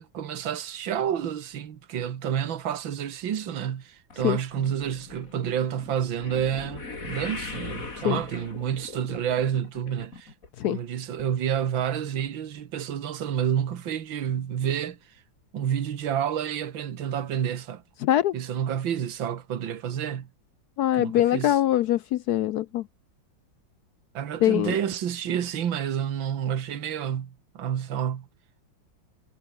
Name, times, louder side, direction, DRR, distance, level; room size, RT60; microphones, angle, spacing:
voice 1, 0.0-10.3 10.6-15.2 15.5-17.8 18.3-20.3 20.9-21.6 24.1-28.3, right 9 dB, 80° right, 2.2 m, -29 dB
sound 1, 4.1-10.5 10.8-11.2 11.8-11.9 12.2-12.3, left 3 dB, 45° left, 3.8 m, -40 dB
voice 2, 18.0-18.3 20.8-22.8 24.4-24.7, left 13 dB, 70° left, 0.9 m, -23 dB
omnidirectional pair, 2.1 m